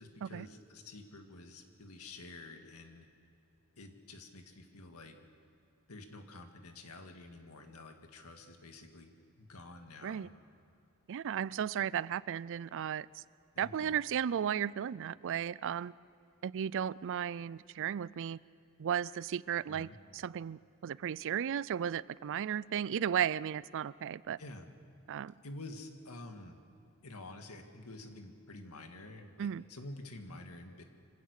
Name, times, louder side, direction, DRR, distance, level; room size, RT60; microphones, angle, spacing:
voice 1, 0.0-3.1 3.8-5.2 5.9-9.1 9.4-10.3 13.5-14.0 19.7-20.0 24.4-24.7 25.4-26.6 27.0-30.8, left 2 dB, 85° left, 5 dB, 1.9 m, -49 dB
voice 2, 11.1-13.2 13.6-15.9 16.4-18.4 18.8-24.4 25.1-25.3 29.4-29.6, right 9 dB, 60° right, 21 dB, 0.4 m, -35 dB
25.5 x 16.5 x 6.6 m, 2.7 s
head